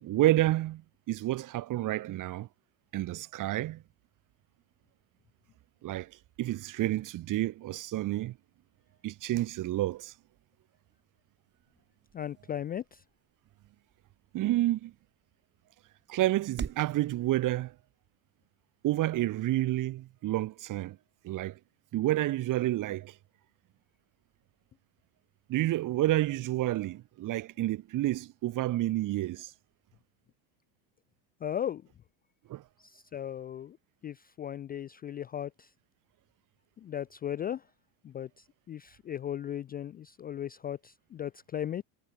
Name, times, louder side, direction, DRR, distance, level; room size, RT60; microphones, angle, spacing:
voice 1, 0.0-0.8 1.1-2.5 2.9-3.8 5.8-6.1 6.4-8.4 9.0-10.1 14.3-14.9 16.1-17.7 18.8-21.0 21.2-21.6 21.9-23.1 25.5-29.5 32.5-32.6, right 15 dB, 40° right, 1.3 m, -29 dB
sound 1, 10.7-16.9, right 6 dB, 20° right, 5.0 m, -48 dB
voice 2, 12.1-13.0 31.4-31.8 32.8-33.8 34.0-35.7 36.8-37.6 38.0-41.8, left 10 dB, 20° left, 0.4 m, -37 dB
supercardioid pair, 125°, 46 cm